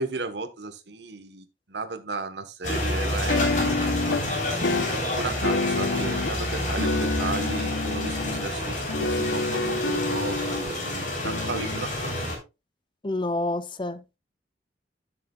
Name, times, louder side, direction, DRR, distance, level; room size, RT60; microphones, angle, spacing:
voice 1, 0.0-3.9 5.2-12.2, right 3 dB, 75° right, 1.2 m, -35 dB
sound 1, 2.6-12.4, left 1 dB, 45° left, 3.3 m, -29 dB
sound 2, 3.0-4.3 4.6-6.4 6.8-8.5 8.9-10.7 11.2-11.9, left 3 dB, 80° left, 0.8 m, -28 dB
voice 2, 13.0-14.2, left 2 dB, 25° left, 0.6 m, -28 dB
12.5 x 6.8 x 2.3 m
head